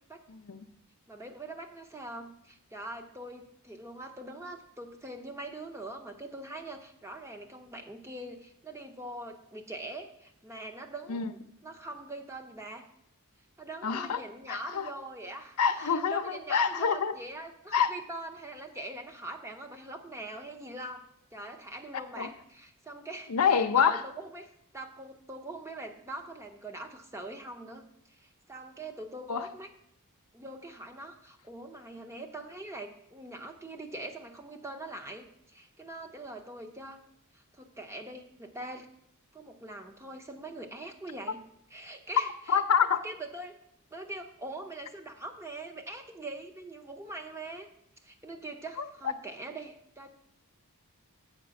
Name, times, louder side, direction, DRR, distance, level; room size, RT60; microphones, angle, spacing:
voice 1, 0.3-0.6 11.1-11.3 13.8-14.2 14.5-14.9 15.6-17.1 17.7-17.9 22.2-22.3 23.3-24.0 29.3-29.5 42.5-43.0, left 6 dB, 80° left, 9 dB, 0.6 m, -26 dB
voice 2, 1.1-12.9 13.6-21.0 21.3-27.8 28.2-29.7 30.3-37.0 37.5-38.9 39.3-41.4 41.7-42.6 43.0-43.6 43.9-47.7 48.0-50.1, right 1 dB, 10° right, 4 dB, 0.7 m, -43 dB
7.6 x 5.1 x 6.3 m, 0.75 s
head